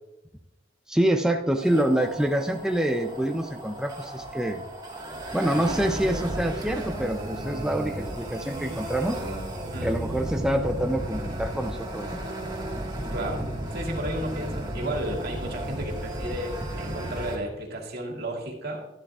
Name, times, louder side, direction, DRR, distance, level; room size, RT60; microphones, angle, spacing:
voice 1, 0.9-4.6 5.3-9.2 9.8-12.2, right 1 dB, 5° right, 4 dB, 0.5 m, -26 dB
sound 1, 1.5-17.4, right 1 dB, 25° right, 1.6 m, -34 dB
voice 2, 13.1-18.9, right 1 dB, 60° right, 1 dB, 2.1 m, -33 dB
12.0 x 11.5 x 2.4 m, 0.97 s
head